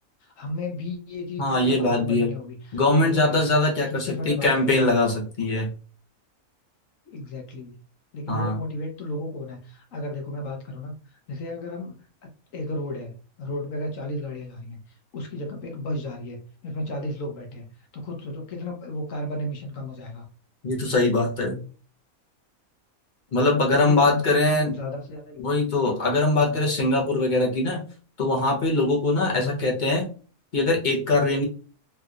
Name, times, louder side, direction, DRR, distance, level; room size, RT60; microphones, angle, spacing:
voice 1, 0.2-3.4 3.9-4.9 7.1-7.8 8.1-16.4 16.6-20.3 23.3-25.8 26.4-26.6 29.3-29.6, left 1 dB, 65° left, 2 dB, 1.1 m, -34 dB
voice 2, 1.4-2.3 2.7-5.7 8.3-8.5 20.6-21.6 23.3-24.7 25.4-27.8 28.2-30.1 30.5-31.4, left 2 dB, 40° left, -2 dB, 0.8 m, -22 dB
3.3 x 2.8 x 2.4 m, 0.38 s
omnidirectional pair, 1.5 m